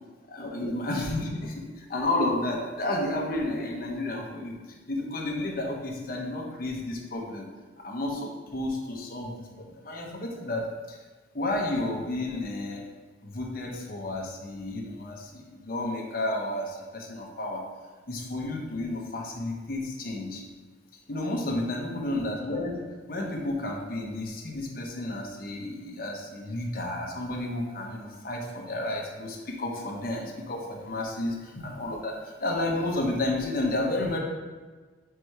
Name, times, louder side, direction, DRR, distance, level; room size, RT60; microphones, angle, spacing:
voice 1, 0.3-4.6 4.9-7.5 7.8-11.0 11.3-12.9 13.2-17.6 18.1-20.4 21.1-34.2, left 1 dB, 50° left, -1 dB, 1.1 m, -31 dB
4.8 x 4.6 x 4.9 m, 1.4 s
head